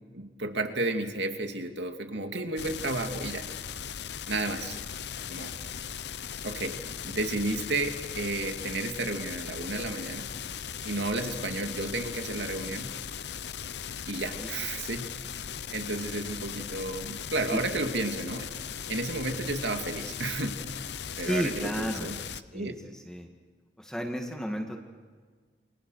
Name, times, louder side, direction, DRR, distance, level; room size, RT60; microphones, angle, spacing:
voice 1, 0.1-3.5 4.3-4.8 5.3-5.5 6.4-6.8 7.0-10.3 10.8-12.9 14.1-15.1 15.7-18.5 18.9-20.6 21.2-22.2 22.5-22.7, right 2 dB, 80° right, 4 dB, 2.6 m, -32 dB
sound 1, 2.6-22.4, left 8 dB, 75° left, 0.8 m, -38 dB
voice 2, 14.4-14.8 17.5-17.6 21.2-22.1 22.5-23.3 23.8-24.8, equal, 5° left, 1 dB, 2.1 m, -33 dB
29.5 x 27.0 x 6.6 m, 1.5 s
head